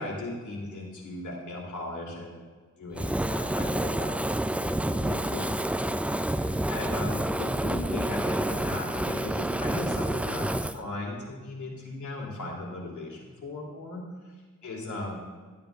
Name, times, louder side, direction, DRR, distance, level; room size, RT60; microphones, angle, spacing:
voice 1, 0.0-2.4 2.8-4.3 4.9-14.0 14.6-15.2, left 2 dB, 75° left, -2 dB, 3.1 m, -37 dB
Fire, 2.9-10.8, right 1 dB, 5° right, 0.3 m, -29 dB
13.5 x 9.1 x 3.5 m, 1.4 s
cardioid pair, 65°, 30 cm